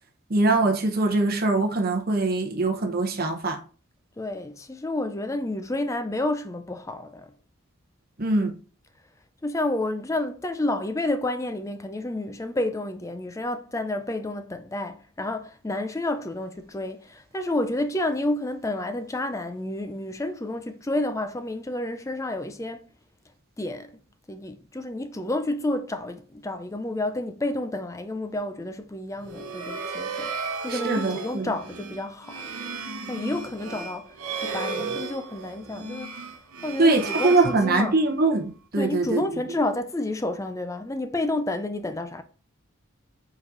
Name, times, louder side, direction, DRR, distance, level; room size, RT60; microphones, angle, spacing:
voice 1, 0.3-3.6 8.2-8.5 30.7-31.5 36.8-39.2, right 2 dB, 45° right, 0.9 m, -22 dB
voice 2, 4.2-7.3 9.4-22.9 23.6-24.0 24.3-30.4 30.6-32.5 33.1-36.3 36.6-37.9 38.8-42.2, left 1 dB, 15° left, 0.4 m, -30 dB
sound 1, 29.2-38.2, right 4 dB, 80° right, 0.9 m, -34 dB
5.2 x 4.1 x 4.7 m
head